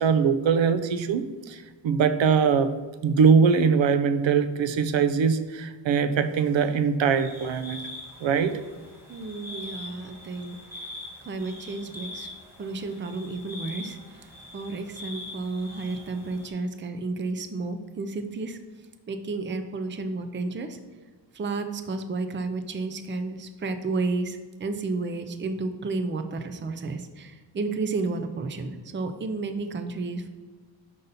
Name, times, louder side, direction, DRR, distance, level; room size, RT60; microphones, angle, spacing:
voice 1, 0.0-2.7 3.0-7.8 8.2-8.6, right 6 dB, 85° right, 11 dB, 0.6 m, -22 dB
sound 1, 7.1-16.5, left 1 dB, 5° right, 1.5 m, -43 dB
voice 2, 9.1-10.6 11.2-12.3 12.6-18.6 19.1-20.8 21.3-30.3, right 3 dB, 25° right, 8 dB, 0.4 m, -32 dB
5.6 x 5.3 x 4.0 m, 1.4 s
wide cardioid pair, 150°, 44 cm